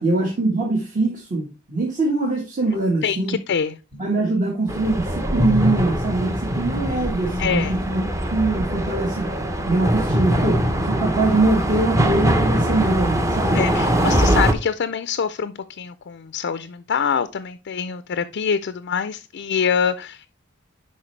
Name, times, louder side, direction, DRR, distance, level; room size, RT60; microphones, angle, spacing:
voice 1, 0.0-3.3 4.0-9.3 9.7-13.7, right 2 dB, 40° right, 1.4 m, -23 dB
voice 2, 3.0-4.0 7.4-7.7 13.5-20.3, left 7 dB, 60° left, 0.4 m, -25 dB
sound 1, 4.7-14.5, equal, 15° right, 0.7 m, -22 dB
11.0 x 4.3 x 3.2 m
head